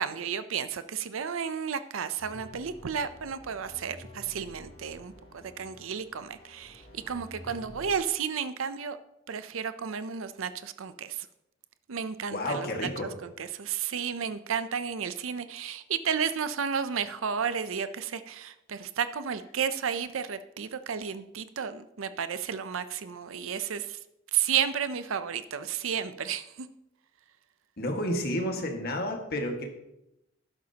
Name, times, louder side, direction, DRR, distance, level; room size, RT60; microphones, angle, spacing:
voice 1, 0.0-9.0 9.3-11.3 11.9-12.7 13.2-24.0 24.3-26.7, right 7 dB, 80° right, 12 dB, 0.6 m, -32 dB
sound 1, 2.2-7.9, left 1 dB, 30° left, 3.0 m, -50 dB
voice 2, 12.3-13.1 27.8-29.7, left 1 dB, 50° left, 2 dB, 1.8 m, -31 dB
12.5 x 11.0 x 2.9 m, 0.89 s
head